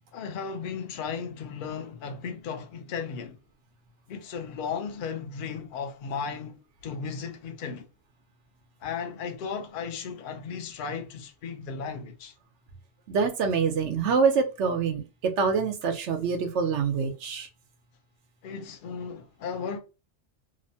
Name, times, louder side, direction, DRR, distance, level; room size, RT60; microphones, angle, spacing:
voice 1, 0.1-3.4 4.1-7.9 8.8-12.3 18.4-19.8, left 6 dB, 55° left, 0.6 m, -35 dB
voice 2, 13.1-17.5, right 5 dB, 80° right, 1.0 m, -25 dB
2.9 x 2.0 x 2.6 m
omnidirectional pair, 1.2 m